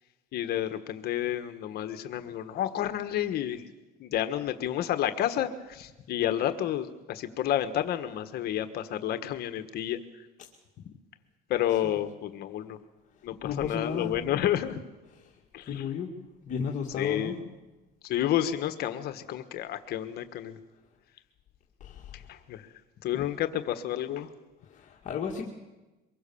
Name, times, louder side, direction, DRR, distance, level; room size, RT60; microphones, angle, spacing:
voice 1, 0.3-3.6 4.0-10.0 11.5-12.8 13.2-14.8 15.5-15.8 17.0-17.4 18.0-20.5 22.3-22.6 23.0-24.3, left 11 dB, 60° left, 9 dB, 1.4 m, -30 dB
voice 2, 13.4-14.2 15.7-16.1 16.5-17.4 21.8-22.0 23.1-23.3 24.7-25.5, left 7 dB, 45° left, -2 dB, 2.2 m, -33 dB
24.0 x 21.5 x 7.1 m, 1.1 s
cardioid pair, 135°, 18 cm